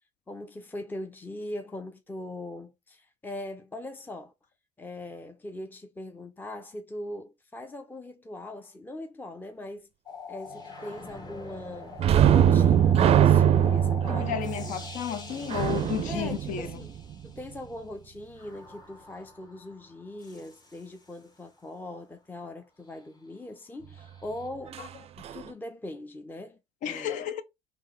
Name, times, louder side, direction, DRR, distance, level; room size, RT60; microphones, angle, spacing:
voice 1, 0.3-4.3 4.8-9.9 10.3-12.0 12.3-14.8 16.1-17.0 17.2-24.8 25.2-26.6 26.8-27.3, left 1 dB, 15° left, 0.6 m, -41 dB
sound 1, 10.1-17.6 18.4-21.4 24.0-24.5, left 5 dB, 30° left, 1.3 m, -45 dB
sound 2, 12.0-17.4 24.7-24.9 25.2-25.4, right 9 dB, 45° right, 0.4 m, -22 dB
voice 2, 14.1-16.7 26.8-27.4, left 9 dB, 60° left, 0.7 m, -32 dB
3.6 x 2.9 x 3.2 m
hypercardioid pair, 60°, 15 cm